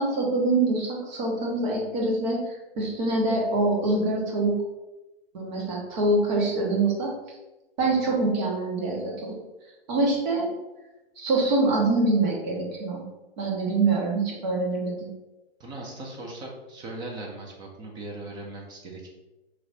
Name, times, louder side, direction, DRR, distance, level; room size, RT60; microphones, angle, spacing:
voice 1, 0.0-2.4 2.8-4.5 5.3-7.1 7.8-9.4 9.9-10.5 11.2-13.0 13.4-15.1, right 2 dB, 45° right, -2 dB, 1.3 m, -25 dB
voice 2, 15.6-19.1, right 2 dB, 15° right, 0 dB, 0.5 m, -39 dB
4.7 x 3.1 x 2.7 m, 1.0 s
hypercardioid pair, 140°, 32 cm